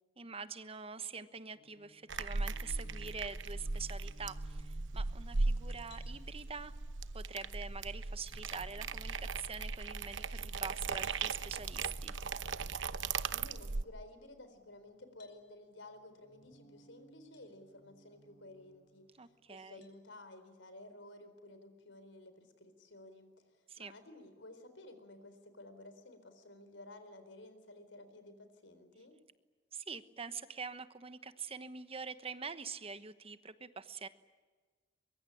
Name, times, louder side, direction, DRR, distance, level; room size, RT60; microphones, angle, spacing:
voice 1, 0.2-6.7 7.1-12.1 19.2-19.8 23.7-23.9 29.7-34.1, right 5 dB, 30° right, 12 dB, 1.1 m, -45 dB
sound 1, 1.5-6.7 7.8-13.0 13.4-15.4 15.8-19.8, right 1 dB, 35° left, 3.2 m, -63 dB
sound 2, 2.1-13.8, right 4 dB, 80° right, 0.9 m, -38 dB
sound 3, 5.9-6.2 7.8-7.9 8.5-8.7 11.1-11.3 13.1-13.2 15.2-15.4 17.3-17.5 18.1-18.2 19.8-20.0, left 8 dB, 65° left, 5.2 m, -62 dB
voice 2, 13.2-29.2, left 2 dB, 80° left, 9 dB, 4.2 m, -54 dB
23.5 x 23.0 x 10.0 m, 1.4 s
head